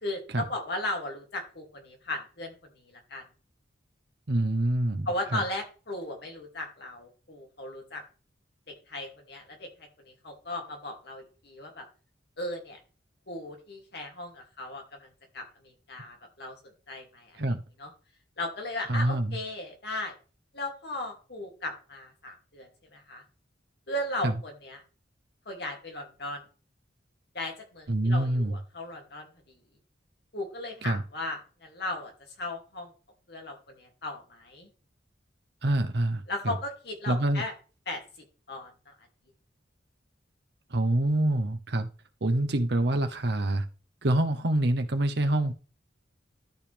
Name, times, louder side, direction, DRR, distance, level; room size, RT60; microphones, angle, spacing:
voice 1, 0.0-3.2 5.1-8.0 8.7-9.7 10.0-11.9 12.4-12.8 13.3-15.1 15.3-16.6 16.9-17.5 17.8-17.9 18.4-20.1 20.5-23.2 23.9-24.8 25.5-26.4 27.3-29.6 30.3-32.1 32.4-32.9 33.3-34.7 36.3-37.5 37.9-38.0 38.5-38.9, left 1 dB, 60° left, 2 dB, 2.6 m, -36 dB
voice 2, 4.3-5.4 17.4-17.6 18.9-19.4 24.2-24.3 27.9-28.6 30.8-31.0 35.6-36.6 37.1-37.4 40.7-41.9 42.2-43.6 44.0-45.5, right 1 dB, 60° right, 8 dB, 0.9 m, -26 dB
13.0 x 5.2 x 3.5 m, 0.36 s
head